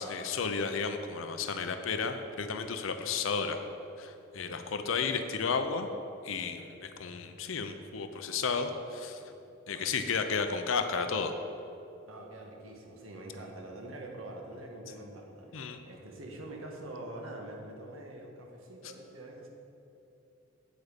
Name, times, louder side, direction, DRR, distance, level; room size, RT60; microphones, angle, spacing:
voice 1, 0.0-3.6 4.0-5.9 6.2-9.2 9.7-11.3 15.5-15.8, left 5 dB, 75° left, 7 dB, 0.6 m, -33 dB
voice 2, 9.0-9.3 9.7-10.7 12.1-19.5, right 1 dB, 85° right, 1 dB, 1.5 m, -45 dB
8.5 x 8.1 x 5.0 m, 2.8 s
head